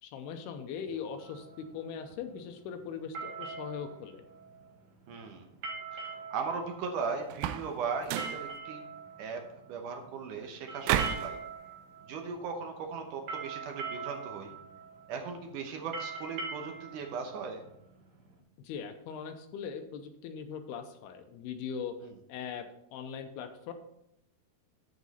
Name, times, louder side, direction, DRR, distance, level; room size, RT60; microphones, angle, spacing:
voice 1, 0.0-4.2 18.6-22.0 22.3-22.7 22.9-23.7, left 7 dB, 80° left, 7 dB, 2.7 m, -40 dB
sound 1, 1.2-18.4, right 4 dB, 55° right, 1.7 m, -43 dB
voice 2, 5.1-5.5 5.9-8.8 9.2-11.4 12.1-14.6 15.1-17.6 22.0-22.1, right 5 dB, 70° right, 3 dB, 2.0 m, -38 dB
sound 2, 7.3-7.7 8.0-8.4 10.8-11.3, right 11 dB, 90° right, 2.7 m, -30 dB
13.0 x 5.1 x 4.2 m, 0.78 s
omnidirectional pair, 4.7 m